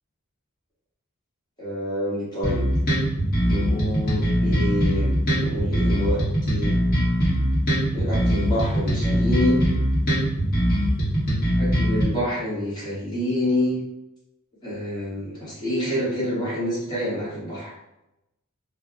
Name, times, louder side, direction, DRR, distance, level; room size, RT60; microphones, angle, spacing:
voice 1, 1.6-2.6 3.4-6.8 7.9-9.6 11.6-13.8 14.6-17.7, left 1 dB, 20° left, -9 dB, 0.9 m, -27 dB
sound 1, 2.4-12.0, equal, 45° left, 1.1 m, -22 dB
2.2 x 2.0 x 3.6 m, 0.91 s
head